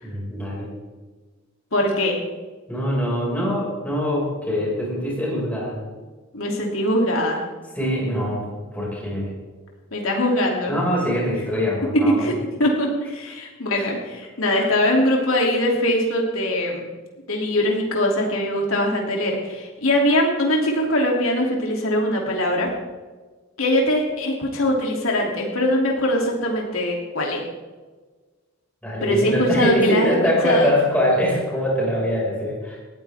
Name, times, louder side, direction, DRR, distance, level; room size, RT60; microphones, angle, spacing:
voice 1, 0.0-0.7 2.7-5.8 7.8-9.3 10.7-12.2 13.8-13.9 14.5-14.7 28.8-32.8, equal, 10° left, -4 dB, 5.5 m, -23 dB
voice 2, 1.7-2.2 6.3-7.4 9.9-10.8 11.9-12.3 12.6-16.9 17.3-22.7 23.6-27.4 29.0-30.2 30.4-30.7, left 1 dB, 90° left, -1 dB, 2.9 m, -21 dB
19.0 x 14.0 x 3.6 m, 1.3 s
head